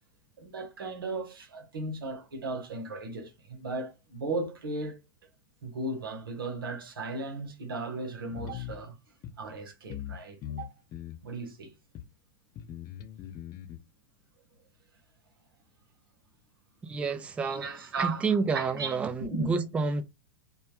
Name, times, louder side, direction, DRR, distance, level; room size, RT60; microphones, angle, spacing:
voice 1, 0.4-5.0 5.6-9.0 9.4-10.8 11.2-11.8 17.4-19.5, right 2 dB, 85° right, 0.8 m, -36 dB
sound 1, 8.3-8.8 9.2-9.3 9.9-10.2 10.4-11.2 12.0-12.1 12.6-13.8, left 11 dB, 35° left, 0.6 m, -40 dB
voice 2, 16.8-17.7 18.0-20.0, right 4 dB, 10° right, 0.3 m, -29 dB
2.2 x 2.2 x 2.9 m
hypercardioid pair, 110°, 12 cm